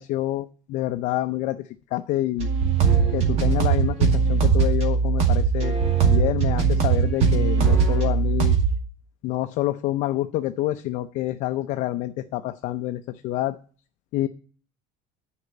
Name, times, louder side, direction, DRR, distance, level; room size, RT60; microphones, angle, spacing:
voice 1, 0.0-1.6 1.9-2.5 3.1-5.7 6.0-8.6 9.2-13.5 14.1-14.3, left 15 dB, 50° left, 8 dB, 0.6 m, -27 dB
sound 1, 2.4-8.8, right 6 dB, 45° right, 2.2 m, -20 dB
9.9 x 5.1 x 8.1 m, 0.39 s
cardioid pair, 165°, 15 cm